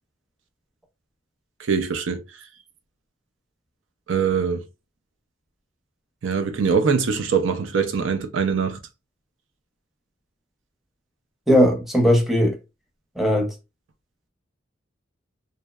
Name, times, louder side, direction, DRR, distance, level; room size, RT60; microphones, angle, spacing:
voice 1, 1.6-2.2 4.1-4.6 6.2-8.8, right 6 dB, 90° right, 0.5 m, -23 dB
voice 2, 11.5-12.6 13.2-13.5, equal, ahead, 0.6 m, -18 dB
2.7 x 2.1 x 2.2 m
head